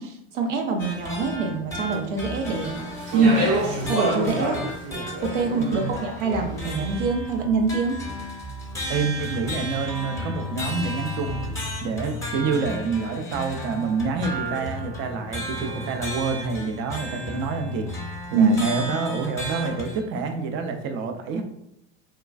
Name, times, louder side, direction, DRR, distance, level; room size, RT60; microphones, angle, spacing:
voice 1, 0.0-2.8 3.1-3.6 3.8-4.6 5.2-8.0 18.3-18.6, right 3 dB, 85° right, 3 dB, 0.6 m, -24 dB
sound 1, 0.8-20.0, left 1 dB, 10° left, 0.7 m, -34 dB
Speech, 2.4-6.8, right 2 dB, 50° right, 0.9 m, -29 dB
voice 2, 5.6-5.9 8.9-11.4 11.8-21.4, right 4 dB, 35° right, 5 dB, 0.4 m, -28 dB
3.2 x 2.2 x 2.4 m, 0.80 s
hypercardioid pair, 80°, 36 cm